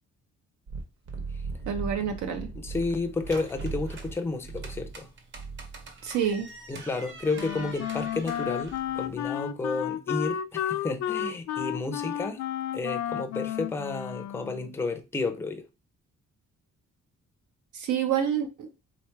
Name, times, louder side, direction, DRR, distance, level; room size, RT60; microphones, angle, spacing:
sound 1, 0.7-3.3 3.5-4.1 4.4-5.0 5.3-5.9, right 4 dB, 55° right, 1.4 m, -37 dB
voice 1, 1.7-2.5 6.0-6.5 17.7-18.7, right 8 dB, 80° right, 0.9 m, -28 dB
voice 2, 2.6-5.1 6.7-12.4 12.7-15.6, left 3 dB, 10° left, 0.5 m, -31 dB
sound 2, 2.7-9.2, right 3 dB, 40° right, 0.9 m, -46 dB
Wind instrument woodwind instrument, 7.3-14.7, left 10 dB, 75° left, 0.5 m, -32 dB
3.7 x 3.2 x 4.5 m
cardioid pair, 170°, 29 cm